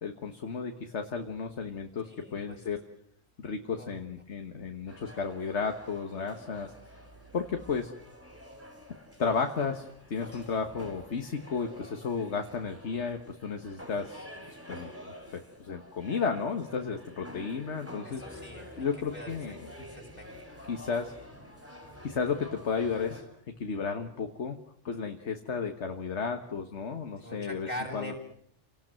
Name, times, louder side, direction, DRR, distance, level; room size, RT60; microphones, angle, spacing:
voice 1, 0.0-2.8 3.4-6.7 7.3-7.9 9.2-14.2 14.7-14.9 15.3-18.2 18.8-19.9 20.7-21.1 22.0-23.2 23.6-24.6 24.9-28.2, left 5 dB, 70° left, 5 dB, 1.8 m, -33 dB
voice 2, 2.0-2.6 3.8-4.0 18.0-18.8 19.1-19.6 19.9-20.3 27.2-28.2, left 1 dB, 35° left, 0 dB, 6.6 m, -42 dB
sound 1, 4.9-23.2, equal, 10° right, 7.1 m, -48 dB
29.5 x 18.5 x 7.7 m, 0.68 s
omnidirectional pair, 1.2 m